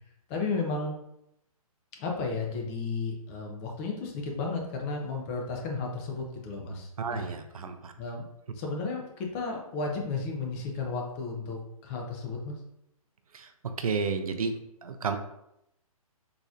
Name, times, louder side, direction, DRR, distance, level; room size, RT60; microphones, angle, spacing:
voice 1, 0.3-0.9 2.0-7.3 8.0-8.2 8.5-12.6, left 4 dB, 25° left, 1 dB, 0.5 m, -33 dB
voice 2, 7.0-7.9 13.3-15.2, right 5 dB, 75° right, 7 dB, 0.5 m, -32 dB
3.9 x 3.0 x 2.3 m, 0.80 s
figure-of-eight pair, 135°, 19 cm